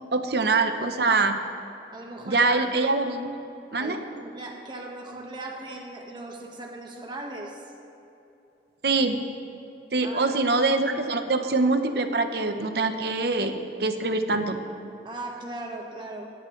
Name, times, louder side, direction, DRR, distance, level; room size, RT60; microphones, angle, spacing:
voice 1, 0.1-1.4 2.3-3.3 3.7-4.0 8.8-9.2 9.9-14.6, right 3 dB, 60° right, 7 dB, 0.9 m, -24 dB
voice 2, 1.9-2.6 3.8-7.6 10.0-10.4 15.0-16.3, right 2 dB, 25° right, 0 dB, 1.5 m, -38 dB
23.0 x 10.0 x 3.2 m, 2.9 s
head